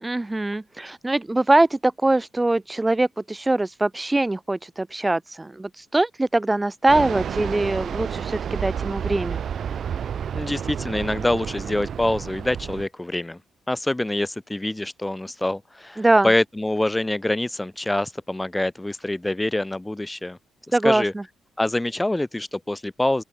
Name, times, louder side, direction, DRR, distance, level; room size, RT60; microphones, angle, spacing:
voice 1, 0.0-9.4 16.0-16.3 20.7-21.2, right 2 dB, 15° right, 1.4 m, -22 dB
Fixed-wing aircraft airplane, 6.9-12.9, right 8 dB, 55° right, 0.9 m, -30 dB
voice 2, 10.3-13.4 13.7-20.4 20.7-21.1 21.6-23.2, left 1 dB, 10° left, 2.5 m, -25 dB
open air
cardioid pair, 90°, 0 cm